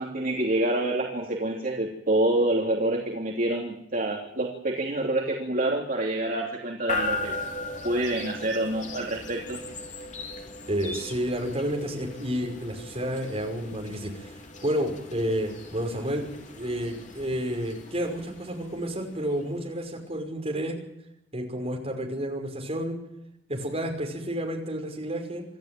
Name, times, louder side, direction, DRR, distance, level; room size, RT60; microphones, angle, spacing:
voice 1, 0.0-7.3 7.8-9.6, right 1 dB, 50° right, -1 dB, 3.1 m, -27 dB
sound 1, 6.9-19.9, left 2 dB, 45° left, 3.1 m, -38 dB
voice 2, 10.7-20.8 21.3-23.0 23.5-25.4, equal, 35° right, 1 dB, 5.7 m, -30 dB
27.0 x 14.0 x 9.2 m, 0.82 s
head